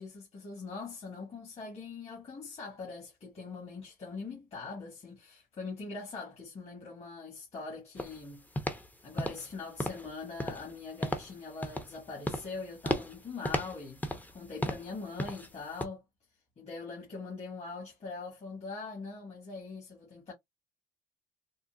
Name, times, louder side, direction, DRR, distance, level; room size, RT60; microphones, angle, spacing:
voice 1, 0.0-8.4 9.0-14.0 14.3-16.0 16.6-20.3, left 4 dB, 40° left, 1.4 m, -42 dB
sound 1, 8.0-8.2 8.6-8.9 9.2-9.5 9.8-10.1 10.4-10.7 11.0-11.3 11.6-12.0 12.2-12.5 12.8-13.2 13.4-14.4 14.6-14.9 15.2-15.5 15.8-15.9, left 1 dB, 10° left, 0.6 m, -34 dB
3.8 x 2.2 x 2.2 m
cardioid pair, 110°, 17 cm